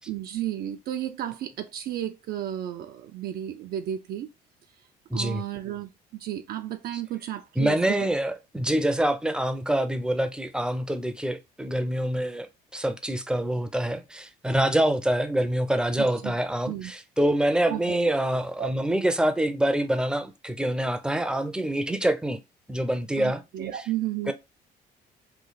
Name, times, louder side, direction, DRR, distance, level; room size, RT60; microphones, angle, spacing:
voice 1, 0.1-4.3 5.1-8.1 16.0-16.3 16.7-16.9 17.7-18.1 18.6-18.7 23.2-24.3, right 12 dB, 65° right, 0.4 m, -33 dB
voice 2, 5.1-5.4 7.6-12.5 12.7-22.4 22.7-23.4 24.3-24.4, right 1 dB, 5° right, 0.5 m, -26 dB
3.2 x 2.4 x 3.9 m
cardioid pair, 110°, 17 cm